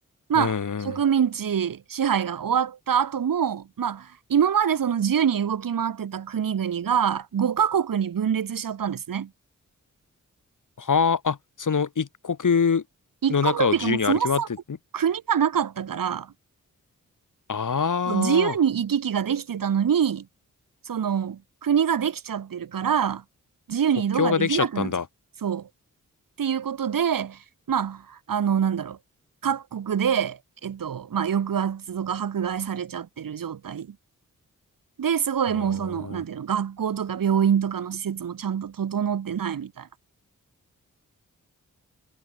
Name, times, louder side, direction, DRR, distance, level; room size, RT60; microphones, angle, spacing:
voice 1, 0.3-1.0 10.8-12.8 13.3-14.4 17.5-18.5 24.2-25.0 35.5-36.2, left 6 dB, 70° left, 5.2 m, -24 dB
voice 2, 0.8-9.3 13.2-14.5 14.9-16.3 18.1-20.3 20.9-23.2 23.7-24.9 25.4-25.7 26.4-27.4 27.7-29.0 29.4-34.0 35.0-39.9, right 8 dB, 85° right, 3.6 m, -25 dB
cardioid pair, 55°, 33 cm